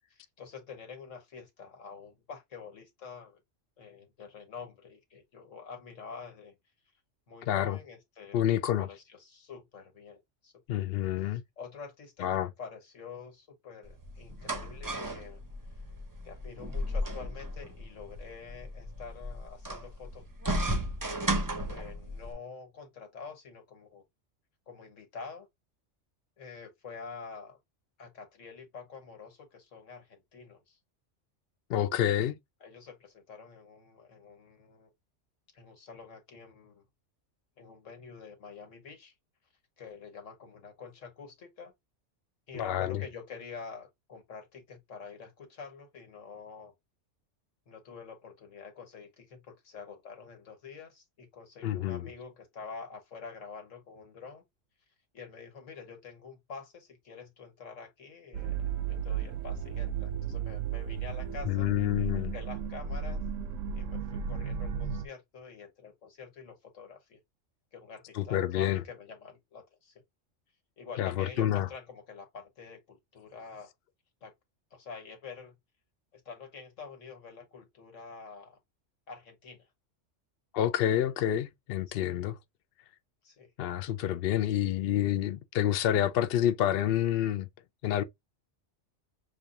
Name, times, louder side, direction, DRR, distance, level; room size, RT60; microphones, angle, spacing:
voice 1, 0.4-3.4 3.8-6.6 7.3-10.5 11.2-15.4 16.2-20.2 21.7-24.0 24.7-25.5 26.4-27.6 28.0-30.8 32.6-34.9 35.5-36.8 37.6-39.1 39.8-41.7 42.5-46.7 47.7-54.4 55.1-61.7 62.1-63.2 63.7-67.2 67.7-69.9 70.8-73.7 74.2-74.3 74.7-75.5 76.1-78.6 79.1-79.7 81.9-82.1 83.2-83.5, left 5 dB, 85° left, 1.7 m, -47 dB
voice 2, 7.5-7.8 8.3-8.9 10.7-11.4 12.2-12.5 31.7-32.4 42.6-43.0 51.6-52.1 61.5-62.3 68.2-68.8 71.0-71.7 80.5-82.4 83.6-87.5 87.8-88.0, left 11 dB, 65° left, 0.6 m, -28 dB
sound 1, 13.9-22.3, right 1 dB, 20° right, 0.6 m, -35 dB
sound 2, 58.3-65.1, right 7 dB, 80° right, 1.0 m, -34 dB
6.3 x 2.4 x 2.6 m
omnidirectional pair, 1.3 m